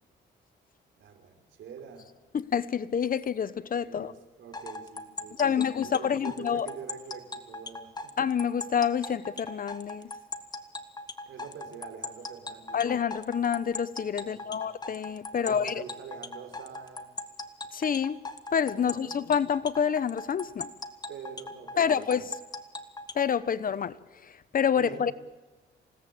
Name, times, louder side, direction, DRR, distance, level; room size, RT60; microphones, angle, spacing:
voice 1, 1.0-2.1 3.9-8.1 11.3-12.8 14.2-14.6 15.3-17.1 18.7-19.2 21.1-22.1 24.7-25.1, right 7 dB, 70° right, 5.4 m, -45 dB
voice 2, 2.3-4.1 5.4-6.7 8.2-10.1 12.7-15.8 17.7-18.2 18.5-20.7 21.8-22.3 23.1-25.1, left 7 dB, 45° left, 1.0 m, -28 dB
sound 1, 4.5-23.3, left 2 dB, 20° left, 2.0 m, -39 dB
28.0 x 18.0 x 8.7 m
cardioid pair, 90°, 20 cm